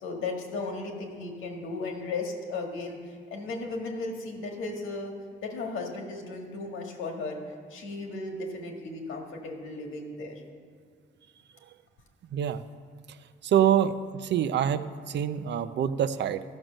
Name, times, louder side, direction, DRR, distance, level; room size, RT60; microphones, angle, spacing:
voice 1, 0.0-5.1 5.4-7.4 7.7-10.3, left 3 dB, 85° left, 1 dB, 1.8 m, -35 dB
voice 2, 12.3-12.6 13.4-16.4, right 9 dB, 60° right, 12 dB, 0.5 m, -26 dB
13.0 x 6.2 x 6.4 m, 2.1 s
cardioid pair, 90°, 20 cm